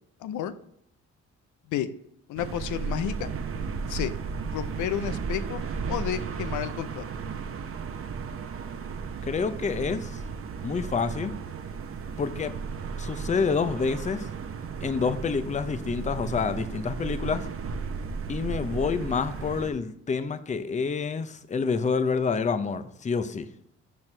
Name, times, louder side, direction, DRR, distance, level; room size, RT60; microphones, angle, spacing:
voice 1, 0.2-0.5 1.7-1.9 2.3-3.3 3.9-4.1 4.5-5.6 5.9-7.0, left 10 dB, 80° left, 0.6 m, -31 dB
sound 1, 2.4-19.7, right 5 dB, 45° right, 0.8 m, -34 dB
voice 2, 9.2-10.2 10.6-11.3 12.2-12.5 13.0-14.3 14.8-17.4 18.3-23.5, left 5 dB, 25° left, 0.6 m, -28 dB
12.0 x 4.4 x 3.3 m
cardioid pair, 90°, 30 cm